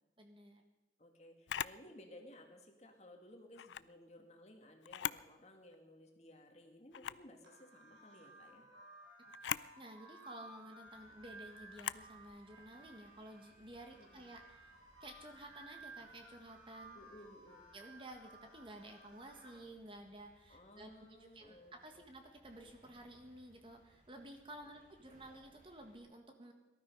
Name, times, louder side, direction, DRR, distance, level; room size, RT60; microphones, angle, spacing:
voice 1, 0.2-0.6 9.4-14.7 15.0-17.0 17.7-26.5, right 1 dB, 30° right, 4 dB, 1.6 m, -53 dB
voice 2, 1.0-8.7 13.9-14.3 16.9-17.6 20.5-22.0 22.6-22.7 24.8-25.0, left 1 dB, 40° left, 3 dB, 2.0 m, -58 dB
Camera, 1.5-1.8 3.5-3.9 4.8-5.3 5.7-5.8 6.9-7.3 9.3-9.7 11.7-12.1, left 10 dB, 85° left, 0.4 m, -40 dB
sound 1, 7.4-19.6, right 2 dB, 70° right, 6.5 m, -57 dB
sound 2, 10.8-26.0, equal, 45° right, 5.6 m, -70 dB
18.5 x 12.5 x 5.4 m, 1.1 s
head